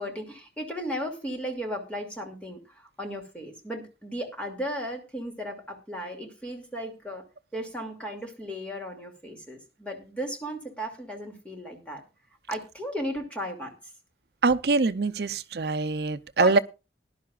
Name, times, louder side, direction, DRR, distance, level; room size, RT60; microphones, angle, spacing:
voice 1, 0.0-7.2 7.5-12.0 12.5-13.7 16.4-16.6, equal, 5° left, 2.6 m, -35 dB
voice 2, 14.4-16.6, right 3 dB, 65° right, 0.6 m, -24 dB
19.0 x 11.5 x 2.4 m
head